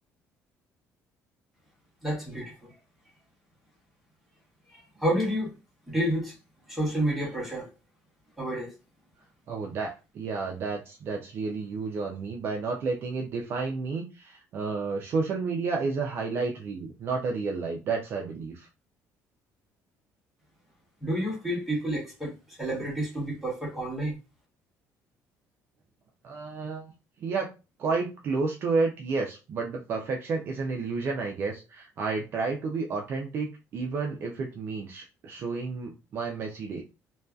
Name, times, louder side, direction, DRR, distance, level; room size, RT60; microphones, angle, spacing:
voice 1, 2.0-2.7 4.7-5.6 5.9-6.4 6.7-7.7 8.4-8.7 21.0-24.2, right 1 dB, ahead, 1.0 m, -30 dB
voice 2, 9.5-18.7 26.2-26.9 27.2-27.5 27.8-36.8, right 4 dB, 40° right, 0.4 m, -31 dB
2.6 x 2.2 x 2.3 m
cardioid pair, 175°, 6 cm